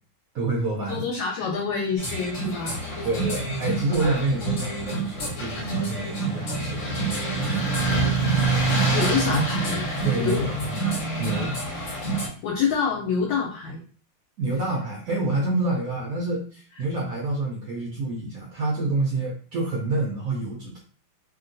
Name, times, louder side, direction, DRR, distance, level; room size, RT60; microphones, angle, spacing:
voice 1, 0.3-1.0 3.0-7.8 10.0-10.8 11.2-11.6 14.4-20.8, right 2 dB, 70° right, -2 dB, 0.8 m, -28 dB
voice 2, 0.9-2.8 8.9-9.8 10.2-10.5 12.4-13.8, left 5 dB, 75° left, 0 dB, 1.2 m, -26 dB
sound 1, 2.0-12.3, right 3 dB, 55° left, 0.8 m, -26 dB
2.9 x 2.7 x 2.6 m, 0.41 s
omnidirectional pair, 2.3 m